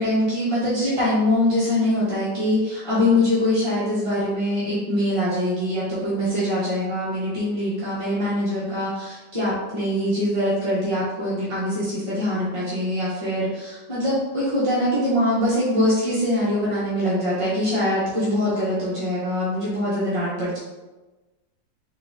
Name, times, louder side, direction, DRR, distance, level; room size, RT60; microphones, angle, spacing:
voice 1, 0.0-20.6, left 1 dB, 25° right, -10 dB, 0.8 m, -23 dB
3.8 x 3.3 x 3.7 m, 1.1 s
omnidirectional pair, 2.0 m